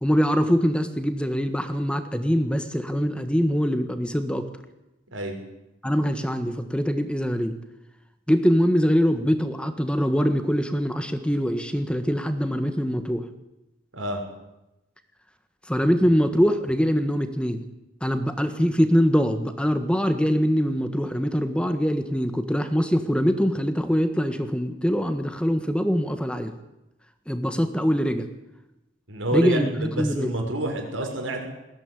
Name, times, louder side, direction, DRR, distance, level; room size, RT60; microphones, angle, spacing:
voice 1, 0.0-4.5 5.8-7.5 8.3-13.2 15.7-17.7 18.0-26.5 27.3-28.3 29.3-30.3, equal, 5° left, 8 dB, 1.5 m, -23 dB
voice 2, 29.1-31.4, right 1 dB, 85° right, 3 dB, 6.5 m, -28 dB
21.0 x 16.5 x 9.9 m, 0.94 s
head